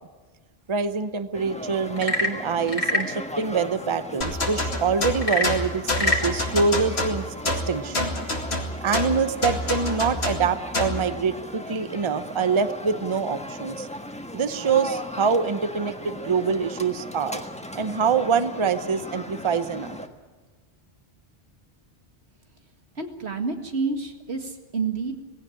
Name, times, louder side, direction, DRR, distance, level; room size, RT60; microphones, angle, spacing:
voice 1, 0.7-7.2 7.7-8.1 8.8-13.9 14.3-17.4 17.7-20.0, right 5 dB, 30° right, 11 dB, 0.8 m, -25 dB
sound 1, 1.3-20.1, equal, 5° left, 1.4 m, -37 dB
Frog / Percussion / Wood, 1.9-3.2 5.1-6.3, left 2 dB, 30° left, 2.1 m, -25 dB
sound 2, 4.2-11.0, left 1 dB, 80° left, 2.6 m, -27 dB
voice 2, 23.0-25.2, right 4 dB, 90° right, 4 dB, 2.3 m, -29 dB
19.0 x 16.5 x 9.9 m, 1.3 s
omnidirectional pair, 1.1 m